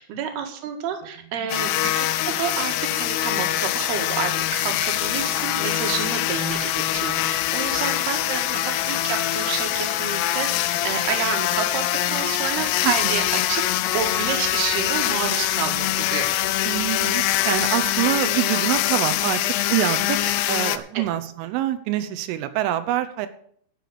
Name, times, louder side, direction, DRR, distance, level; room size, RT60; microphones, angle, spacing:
voice 1, 0.0-11.8 12.1-13.6 13.9-16.3, right 7 dB, 60° right, 4 dB, 3.4 m, -29 dB
voice 2, 1.4-2.0 8.5-8.7 12.8-13.3 16.7-19.4 19.7-23.3, right 13 dB, 90° right, 10 dB, 3.4 m, -26 dB
sound 1, 1.5-20.8, left 13 dB, 85° left, 2.4 m, -24 dB
Wind instrument woodwind instrument, 9.6-17.1, left 3 dB, 15° left, 3.0 m, -45 dB
12.0 x 6.8 x 7.8 m, 0.62 s
omnidirectional pair, 5.6 m